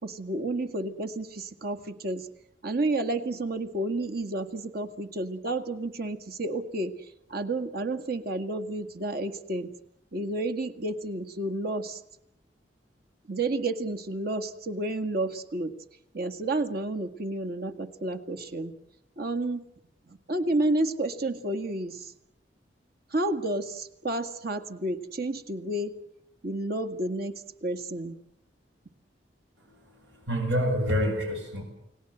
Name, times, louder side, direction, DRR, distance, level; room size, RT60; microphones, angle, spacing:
voice 1, 0.0-2.3 2.6-9.7 10.1-12.0 13.3-15.7 16.1-18.7 19.2-19.6 20.1-22.1 23.1-25.9 26.4-28.2, right 2 dB, 60° right, 6 dB, 1.9 m, -31 dB
voice 2, 29.6-31.6, equal, 80° right, 3 dB, 7.9 m, -28 dB
29.5 x 19.0 x 8.0 m, 0.82 s
head